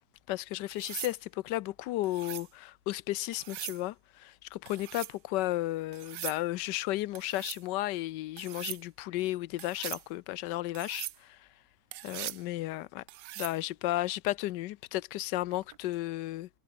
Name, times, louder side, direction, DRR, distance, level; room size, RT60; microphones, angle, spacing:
voice 1, 0.3-11.5 12.0-13.0 13.4-16.5, left 16 dB, 90° left, 1.3 m, -34 dB
sound 1, 0.7-1.2 2.0-2.5 3.3-3.8 4.7-5.2 5.9-6.4 7.2-7.6 8.4-8.8 9.6-10.1 10.8-11.2 11.9-12.4 13.1-13.6 15.5-15.8, right 15 dB, 90° right, 1.3 m, -41 dB
omnidirectional pair, 1.8 m